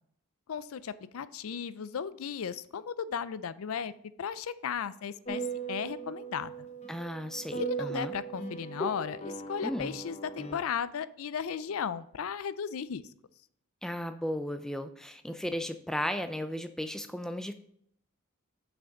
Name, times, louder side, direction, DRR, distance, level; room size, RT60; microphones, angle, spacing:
voice 1, 0.5-3.9 4.2-5.4 5.7-6.7 7.6-13.1, left 7 dB, 70° left, 16 dB, 0.4 m, -35 dB
sound 1, 5.2-10.6, right 4 dB, 30° left, 0.9 m, -38 dB
voice 2, 6.9-8.2 9.6-10.0 13.8-17.5, equal, ahead, 9 dB, 0.4 m, -35 dB
6.5 x 6.1 x 3.8 m, 0.69 s
head